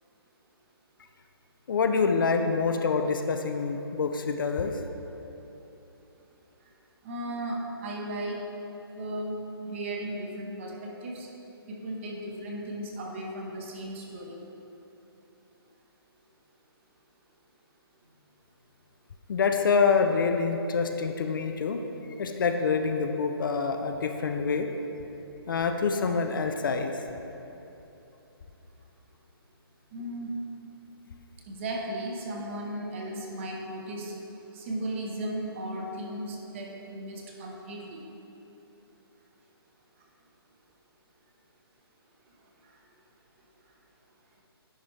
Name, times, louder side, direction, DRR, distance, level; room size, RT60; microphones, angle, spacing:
voice 1, 1.7-4.7 19.3-21.8 22.2-24.7 25.5-26.9, left 5 dB, 55° left, 6 dB, 0.4 m, -26 dB
voice 2, 7.0-8.4 9.0-11.3 11.7-14.4 29.9-30.3 31.5-34.1 34.5-38.0, right 1 dB, 30° right, 0 dB, 0.8 m, -36 dB
10.0 x 4.2 x 3.2 m, 3.0 s
hypercardioid pair, 160°, 13 cm